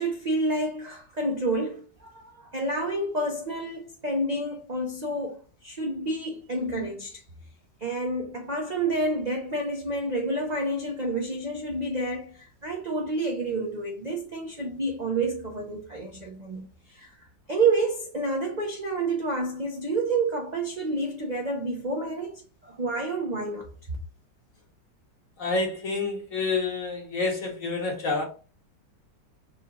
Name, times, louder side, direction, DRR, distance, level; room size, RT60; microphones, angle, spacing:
voice 1, 0.0-7.2 7.8-17.1 17.5-23.7, right 2 dB, 50° right, 0.5 m, -29 dB
voice 2, 25.4-28.2, left 3 dB, 50° left, 1.6 m, -28 dB
4.8 x 2.7 x 3.6 m
omnidirectional pair, 1.9 m